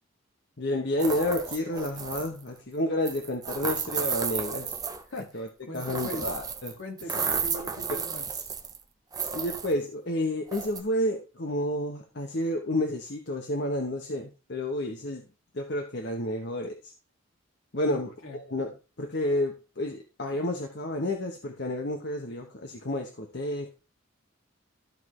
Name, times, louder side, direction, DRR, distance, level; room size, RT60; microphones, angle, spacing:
voice 1, 0.6-4.8 5.3-5.5 5.7-6.8 7.9-8.0 9.3-15.2 15.5-16.9 17.7-23.7, left 1 dB, 55° left, 3 dB, 1.0 m, -30 dB
sound 1, 1.0-2.4 3.1-5.2 5.7-6.7 7.0-8.8 9.1-9.7 10.5-10.8, right 6 dB, 20° right, 0.7 m, -32 dB
voice 2, 5.1-6.3 6.8-8.3 17.9-18.4, left 1 dB, 75° left, 2 dB, 2.0 m, -40 dB
13.0 x 4.6 x 3.2 m, 0.32 s
head